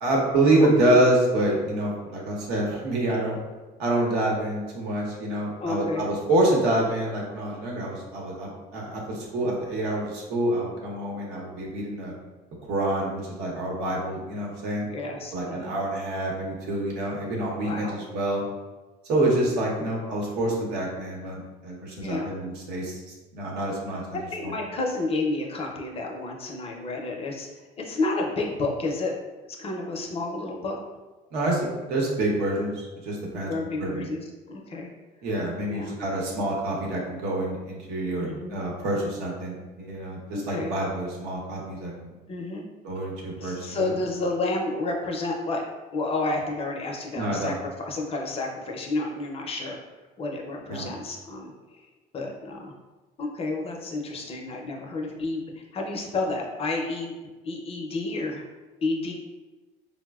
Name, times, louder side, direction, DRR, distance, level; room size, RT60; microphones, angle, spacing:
voice 1, 0.0-3.4 3.8-12.1 12.6-14.9 15.3-18.4 19.1-24.0 24.4-24.6 31.3-31.6 31.9-33.5 33.8-34.1 35.2-42.1 42.8-43.9 47.1-47.5 50.7-50.9, right 1 dB, 75° right, -2 dB, 0.8 m, -27 dB
voice 2, 5.6-6.1 14.9-15.8 17.6-18.0 19.6-19.9 22.0-22.3 23.9-29.1 29.6-30.8 33.3-34.9 35.7-35.9 38.2-38.6 40.3-40.7 42.3-42.6 43.4-45.6 45.9-49.8 50.2-51.8 52.1-52.7 53.2-57.1 57.4-58.5 58.8-59.1, left 2 dB, 35° left, 1 dB, 0.5 m, -30 dB
4.0 x 2.0 x 2.3 m, 1.2 s
cardioid pair, 115°, 17 cm